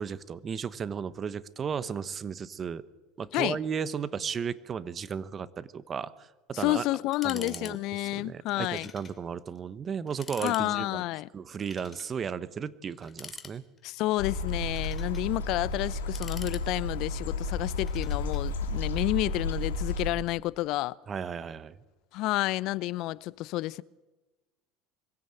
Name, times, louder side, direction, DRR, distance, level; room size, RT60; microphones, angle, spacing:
voice 1, 0.0-2.9 3.2-6.9 7.2-11.0 11.3-13.6 21.1-21.7, right 7 dB, 35° right, 1.1 m, -35 dB
voice 2, 6.5-8.9 10.4-11.3 13.8-20.9 22.1-23.8, left 18 dB, 60° left, 0.6 m, -30 dB
sound 1, 7.1-7.7 8.0-8.1 8.7-9.2 9.6-9.7 10.1-10.7 11.6-12.1 13.0-13.9 14.5-15.3 15.9-17.1 17.8-18.4, left 5 dB, 25° left, 2.7 m, -46 dB
sound 2, 14.2-20.1, left 3 dB, 90° left, 2.8 m, -32 dB
23.5 x 16.0 x 7.9 m
hypercardioid pair, 85°, 0 cm